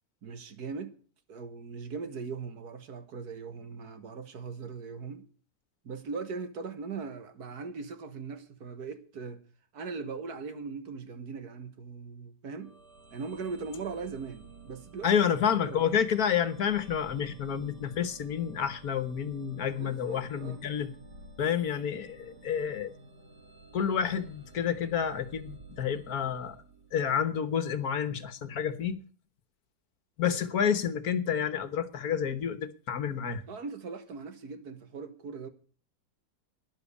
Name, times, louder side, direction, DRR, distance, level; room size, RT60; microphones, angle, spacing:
voice 1, 0.2-1.0 1.3-5.3 5.8-9.4 9.7-12.7 13.1-15.2 15.6-15.9 19.8-20.6 33.5-35.5, right 5 dB, 65° right, 1.9 m, -40 dB
sound 1, 12.6-27.3, right 2 dB, 80° right, 3.6 m, -53 dB
voice 2, 15.0-20.9 21.4-22.9 23.7-26.6 26.9-29.0 30.2-33.4, left 8 dB, 65° left, 1.6 m, -29 dB
12.5 x 10.5 x 8.2 m
omnidirectional pair, 1.8 m